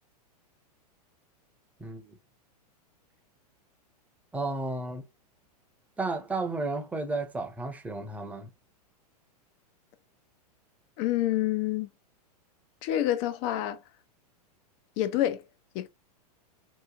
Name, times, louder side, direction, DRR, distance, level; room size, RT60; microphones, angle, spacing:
voice 1, 1.8-2.2 4.3-5.0 6.0-8.5, right 3 dB, 5° right, 0.7 m, -33 dB
voice 2, 11.0-11.9 12.8-13.8 15.0-15.4 15.7-15.9, left 13 dB, 45° left, 0.6 m, -27 dB
3.0 x 2.4 x 3.7 m
hypercardioid pair, 115°, 21 cm